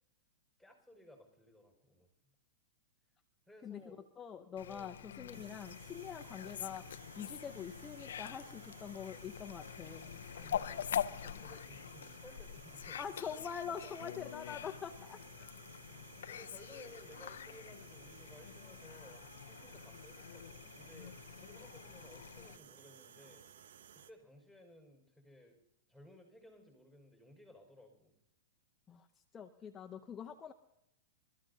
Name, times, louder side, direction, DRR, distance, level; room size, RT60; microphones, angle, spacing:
voice 1, 0.6-2.1 3.5-4.0 4.7-4.9 10.3-13.0 13.7-14.0 15.4-15.5 16.3-23.5 23.9-25.6 25.9-28.1, left 1 dB, 5° right, 0 dB, 5.3 m, -58 dB
voice 2, 3.6-10.2 12.9-15.2 28.9-29.1 29.3-30.5, left 7 dB, 20° left, 5 dB, 0.8 m, -45 dB
Fowl, 4.6-22.6, left 9 dB, 80° left, 0.5 m, -45 dB
sound 1, 5.3-24.1, right 8 dB, 75° right, 0.9 m, -58 dB
27.5 x 13.5 x 2.8 m, 0.84 s
hypercardioid pair, 130°, 0 cm